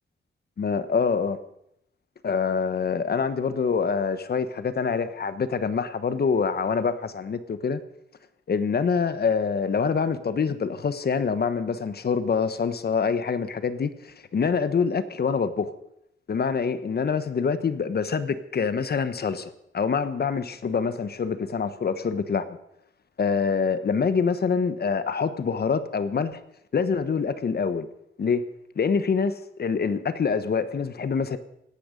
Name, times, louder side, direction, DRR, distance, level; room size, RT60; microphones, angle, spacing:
voice 1, 0.6-1.4 2.2-7.8 8.5-15.7 16.3-22.6 23.2-26.4 26.7-27.9 28.2-28.5 28.8-31.4, left 5 dB, 50° left, 12 dB, 1.1 m, -25 dB
17.5 x 12.5 x 5.2 m, 0.78 s
wide cardioid pair, 115°, 21 cm